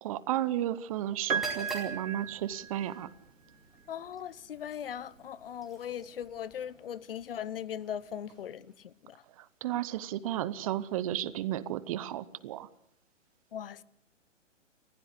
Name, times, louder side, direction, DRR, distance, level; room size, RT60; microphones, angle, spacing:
voice 1, 0.0-3.1 9.4-12.7, right 12 dB, 30° right, 0.9 m, -33 dB
sound 1, 1.2-9.1, right 2 dB, ahead, 5.8 m, -49 dB
Piano, 1.3-3.3 4.6-4.7, right 6 dB, 90° right, 0.8 m, -35 dB
voice 2, 3.9-9.2 13.5-13.8, left 9 dB, 50° left, 1.0 m, -39 dB
29.5 x 15.0 x 8.5 m
figure-of-eight pair, 130°, 38 cm